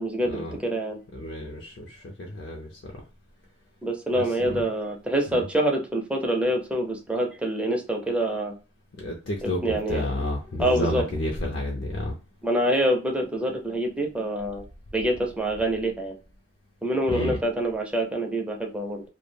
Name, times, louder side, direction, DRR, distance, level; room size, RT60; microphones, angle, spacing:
voice 1, 0.0-1.0 3.8-8.5 9.4-10.0 10.6-11.1 12.4-14.6 14.9-16.1 16.8-19.0, right 1 dB, 5° right, 1 dB, 0.4 m, -26 dB
voice 2, 1.1-2.9 4.2-4.6 5.3-5.4 9.0-12.2 17.1-17.4, left 1 dB, 60° left, 0 dB, 0.4 m, -31 dB
2.2 x 2.1 x 3.2 m, 0.32 s
head